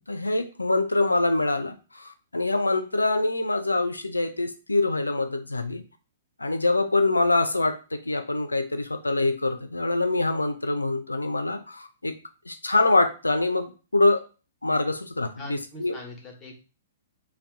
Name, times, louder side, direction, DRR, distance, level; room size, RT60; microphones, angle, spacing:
voice 1, 0.1-5.8 6.4-12.1 12.5-14.2 14.6-16.0, left 2 dB, 85° left, 8 dB, 0.4 m, -25 dB
voice 2, 15.4-16.6, left 1 dB, 20° left, 1 dB, 1.0 m, -42 dB
2.7 x 2.2 x 3.4 m, 0.33 s
figure-of-eight pair, 115°, 0 cm